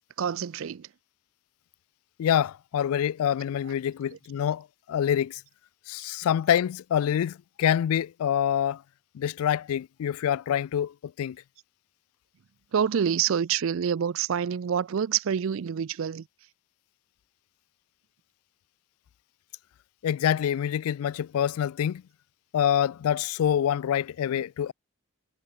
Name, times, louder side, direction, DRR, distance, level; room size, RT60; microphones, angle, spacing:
voice 1, 0.2-0.9 12.7-16.2, right 8 dB, 70° right, 0.4 m, -27 dB
voice 2, 2.2-5.4 5.9-8.8 9.1-11.4 20.0-22.0 22.5-24.7, left 9 dB, 80° left, 0.3 m, -26 dB
head